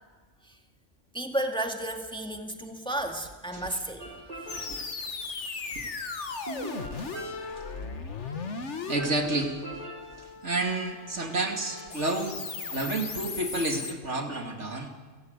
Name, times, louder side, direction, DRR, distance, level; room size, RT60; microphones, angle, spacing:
voice 1, 1.1-4.1, right 1 dB, 5° left, 4 dB, 2.0 m, -32 dB
sound 1, 4.0-5.1 6.5-7.9 9.0-10.4, right 1 dB, 45° right, 3.0 m, -42 dB
sound 2, 4.5-13.9, left 4 dB, 65° left, 1.9 m, -37 dB
voice 2, 4.5-4.9 5.8-5.9 8.9-9.5 10.4-12.4 12.7-14.9, right 2 dB, 65° right, 4 dB, 2.9 m, -30 dB
29.5 x 16.0 x 9.6 m, 1.4 s
omnidirectional pair, 1.3 m